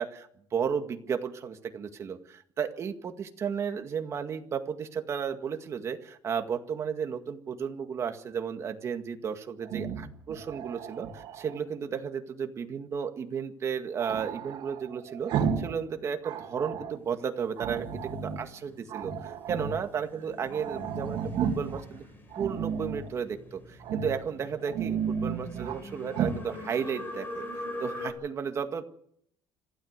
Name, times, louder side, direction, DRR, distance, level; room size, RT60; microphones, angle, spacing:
voice 1, 0.0-22.0 22.4-28.8, right 7 dB, 30° right, 6 dB, 1.9 m, -34 dB
Growling, 9.6-11.6 14.0-15.8 16.1-17.0 17.6-18.5 18.9-19.9 20.2-20.3 20.5-21.8 22.3-23.1 23.8-24.2 24.6-25.8 26.1-26.4, right 7 dB, 60° right, 3.6 m, -33 dB
sound 1, 17.7-28.1, left 1 dB, 20° left, 5.2 m, -43 dB
26.0 x 16.0 x 6.6 m, 0.68 s
cardioid pair, 175°, 9 cm